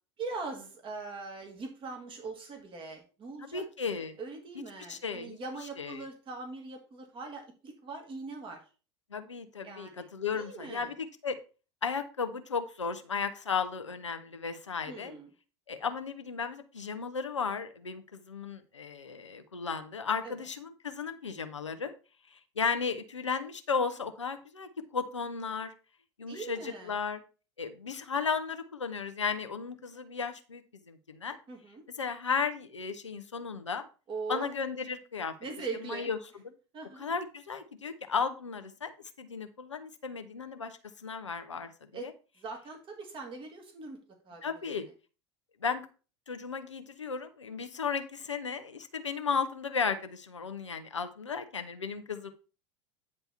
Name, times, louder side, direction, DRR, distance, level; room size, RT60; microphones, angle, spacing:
voice 1, 0.2-8.6 9.6-10.1 10.3-10.9 14.9-15.3 20.2-20.3 26.3-26.9 31.5-31.8 34.1-34.5 35.4-36.1 36.7-37.1 41.9-44.9, right 3 dB, 35° right, 3 dB, 2.1 m, -41 dB
voice 2, 3.4-4.1 4.9-5.4 5.8-6.0 9.1-11.3 11.8-15.1 15.7-21.9 22.3-25.7 26.2-27.2 27.6-31.4 32.0-33.8 34.3-35.3 35.8-36.2 37.0-38.9 39.2-42.1 44.4-44.9 45.6-45.8 46.3-52.3, left 5 dB, 90° left, 8 dB, 0.8 m, -35 dB
9.5 x 3.4 x 5.4 m, 0.34 s
hypercardioid pair, 80°, 15 cm